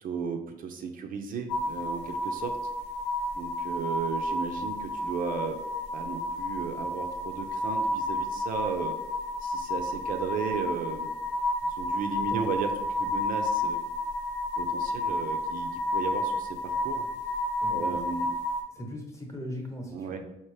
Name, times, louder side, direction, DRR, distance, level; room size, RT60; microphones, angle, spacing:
voice 1, 0.0-2.6 3.3-5.6 5.9-9.0 9.4-11.1 11.6-12.7 13.0-13.8 14.6-17.0 17.7-18.3 19.9-20.2, right 6 dB, 55° right, 4 dB, 0.5 m, -35 dB
sound 1, 1.5-18.6, left 1 dB, 85° left, 0.7 m, -31 dB
voice 2, 12.3-12.6 17.6-17.9 18.7-20.3, equal, 15° left, 1 dB, 0.9 m, -39 dB
4.3 x 2.9 x 3.2 m, 0.89 s
cardioid pair, 110°, 17 cm